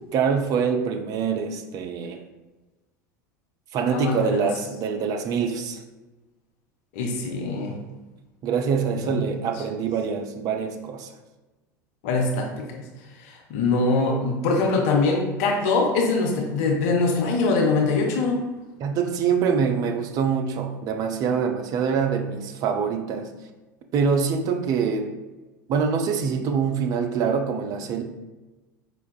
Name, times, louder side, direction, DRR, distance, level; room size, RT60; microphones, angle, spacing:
voice 1, 0.1-2.2 3.7-5.8 8.4-11.1 18.8-23.3 23.9-25.1 25.7-28.0, right 6 dB, 40° right, 4 dB, 0.4 m, -25 dB
voice 2, 3.9-4.5 6.9-7.8 9.0-9.1 12.0-12.8 13.2-18.4, left 3 dB, 50° left, 1 dB, 0.5 m, -23 dB
4.5 x 2.2 x 2.2 m, 1.1 s
figure-of-eight pair, 75°, 10 cm